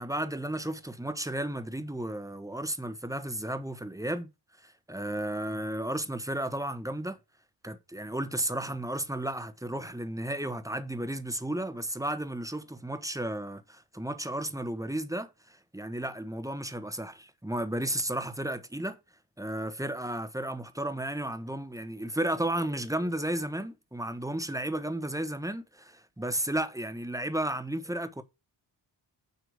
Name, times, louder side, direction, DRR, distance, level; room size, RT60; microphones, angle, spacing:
voice 1, 0.0-4.3 4.6-7.2 7.6-19.0 19.4-28.2, right 1 dB, 5° right, 1.3 m, -33 dB
9.5 x 3.2 x 6.4 m
cardioid pair, 55°, 47 cm